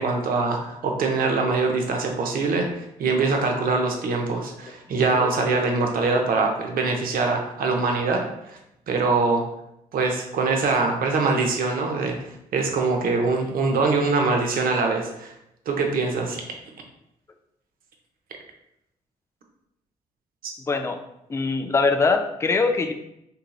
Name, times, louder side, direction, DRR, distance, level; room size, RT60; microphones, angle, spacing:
voice 1, 0.0-2.7 3.0-8.6 8.9-9.4 9.9-12.2 12.5-15.3 15.7-16.4 20.4-20.5, right 3 dB, 55° right, 2 dB, 0.6 m, -23 dB
voice 2, 20.7-21.0 21.3-22.9, left 4 dB, 15° left, 6 dB, 0.3 m, -22 dB
2.8 x 2.7 x 2.3 m, 0.82 s
hypercardioid pair, 45°, 18 cm